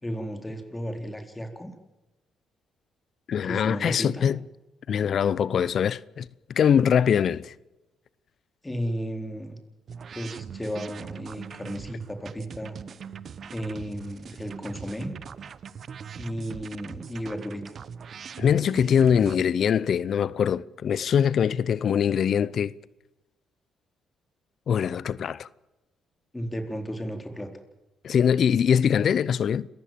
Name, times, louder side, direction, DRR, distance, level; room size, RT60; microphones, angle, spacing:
voice 1, 0.0-1.7 3.4-4.3 8.6-9.6 10.1-12.8 13.5-15.1 16.2-17.8 26.3-27.5, equal, 15° left, 4.2 m, -34 dB
voice 2, 3.3-4.4 4.9-6.3 6.5-7.5 18.4-22.7 24.7-25.5 28.0-29.7, left 8 dB, 60° left, 0.7 m, -23 dB
sound 1, 9.9-19.4, right 7 dB, 50° right, 0.9 m, -41 dB
27.5 x 15.5 x 7.5 m
cardioid pair, 90°, 0 cm